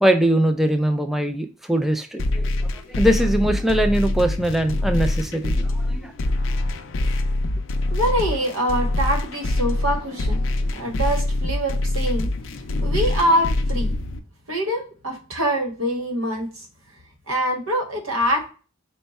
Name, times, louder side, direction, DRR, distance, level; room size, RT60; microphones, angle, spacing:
voice 1, 0.0-6.1, right 1 dB, ahead, 0.3 m, -22 dB
sound 1, 2.2-14.2, left 1 dB, 60° left, 0.4 m, -24 dB
voice 2, 7.9-10.4 10.7-12.3 12.8-13.9 14.5-16.7 17.3-18.5, equal, 80° right, 1.3 m, -24 dB
4.4 x 2.2 x 4.0 m
head